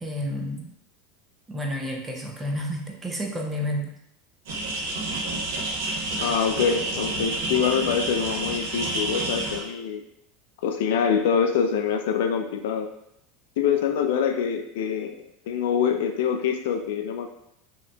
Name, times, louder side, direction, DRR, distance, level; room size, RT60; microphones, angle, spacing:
voice 1, 0.0-0.7 1.5-4.0, equal, 10° right, 1 dB, 0.4 m, -30 dB
sound 1, 4.5-9.6, right 2 dB, 65° right, 0.8 m, -29 dB
voice 2, 6.2-10.0 10.6-12.9 13.6-15.1 15.5-17.3, left 7 dB, 70° left, 6 dB, 0.4 m, -25 dB
4.9 x 2.9 x 2.2 m, 0.79 s
supercardioid pair, 180°, 0 cm